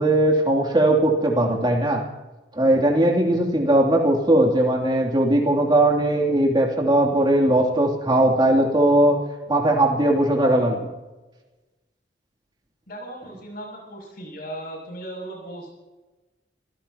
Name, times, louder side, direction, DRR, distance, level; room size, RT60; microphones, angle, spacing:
voice 1, 0.0-2.0 2.5-9.2 9.5-10.8, right 1 dB, 25° right, 0 dB, 2.8 m, -19 dB
voice 2, 12.9-15.7, right 1 dB, 55° left, 0 dB, 7.4 m, -37 dB
27.5 x 17.0 x 2.9 m, 1.1 s
head